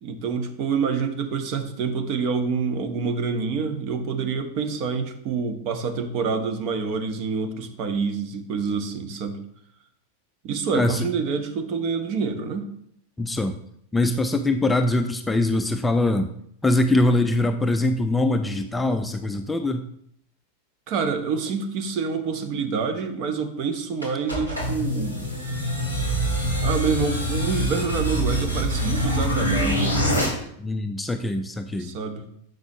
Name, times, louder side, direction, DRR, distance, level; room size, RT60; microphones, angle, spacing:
voice 1, 0.0-9.4 10.4-12.7 20.9-25.2 26.6-30.0 31.8-32.2, right 5 dB, 40° right, 7 dB, 1.0 m, -27 dB
voice 2, 10.7-11.1 13.2-13.5 13.9-16.3 16.6-19.8 30.6-31.9, left 2 dB, 10° left, 7 dB, 0.4 m, -23 dB
sound 1, 24.0-30.3, equal, 85° right, 2.4 m, -24 dB
7.7 x 6.1 x 2.9 m, 0.70 s
figure-of-eight pair, 90°, 0 cm